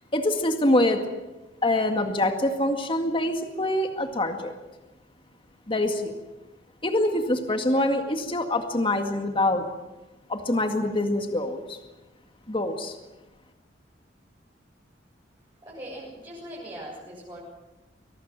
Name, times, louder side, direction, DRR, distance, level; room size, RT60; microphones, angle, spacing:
voice 1, 0.1-1.0 1.6-4.5 5.7-6.1 6.8-9.7 10.3-11.8 12.5-12.9, left 1 dB, 30° left, 5 dB, 2.0 m, -25 dB
voice 2, 15.6-17.4, right 1 dB, 25° right, -7 dB, 7.5 m, -40 dB
23.5 x 19.5 x 7.6 m, 1.1 s
head